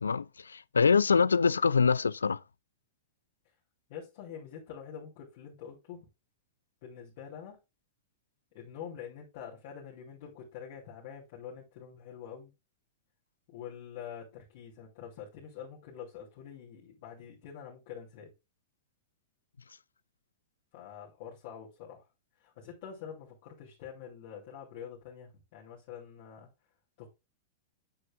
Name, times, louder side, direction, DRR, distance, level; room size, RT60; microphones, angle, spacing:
voice 1, 0.0-2.4, left 5 dB, 85° left, 0.4 m, -25 dB
voice 2, 3.9-6.1 6.8-7.6 8.5-12.5 13.5-18.3 20.7-22.0 22.4-26.5 27.0-27.1, left 8 dB, 55° left, 2.9 m, -46 dB
8.7 x 6.7 x 2.4 m
hypercardioid pair, 100°, 0 cm